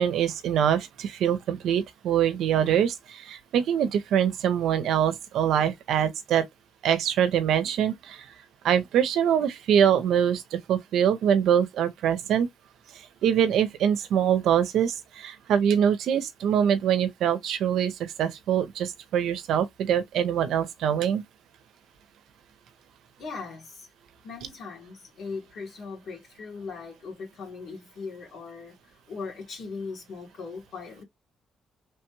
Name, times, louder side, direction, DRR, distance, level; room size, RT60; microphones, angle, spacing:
voice 1, 0.0-6.4 6.8-8.2 8.6-12.5 13.2-21.2, right 9 dB, 80° right, 0.5 m, -24 dB
voice 2, 23.2-23.9 24.2-28.7 29.1-31.0, left 4 dB, 65° left, 1.5 m, -39 dB
3.1 x 2.2 x 2.9 m
cardioid pair, 90°, 0 cm